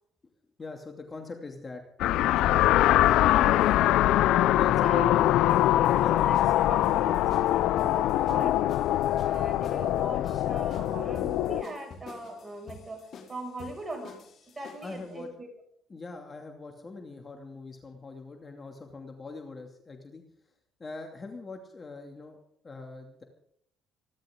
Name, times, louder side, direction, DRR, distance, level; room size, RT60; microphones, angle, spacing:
voice 1, 0.6-1.8 2.2-2.6 4.5-5.2 6.0-6.2 14.8-15.5 15.9-20.2 20.8-22.4 22.6-23.2, left 3 dB, 30° left, 3 dB, 2.5 m, -42 dB
sound 1, 2.0-11.6, left 14 dB, 75° left, 0.5 m, -23 dB
voice 2, 3.1-3.7 4.8-5.4 5.7-8.9 9.2-14.2 14.5-15.5, right 2 dB, 20° right, 3 dB, 6.3 m, -40 dB
sound 2, 5.1-15.0, left 5 dB, 55° left, 4.0 m, -48 dB
27.0 x 11.5 x 3.8 m, 0.70 s
cardioid pair, 95°, 0 cm